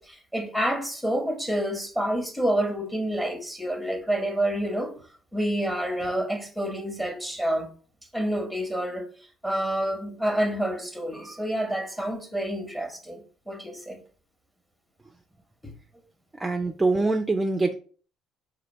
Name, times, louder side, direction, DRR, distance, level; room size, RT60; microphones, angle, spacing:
voice 1, 0.0-4.9 5.3-7.7 8.1-9.1 9.4-14.0 15.6-15.7, right 1 dB, 5° left, 1.0 m, -28 dB
voice 2, 16.4-17.7, right 3 dB, 15° right, 0.4 m, -24 dB
4.2 x 2.6 x 4.1 m
supercardioid pair, 90°, 0 cm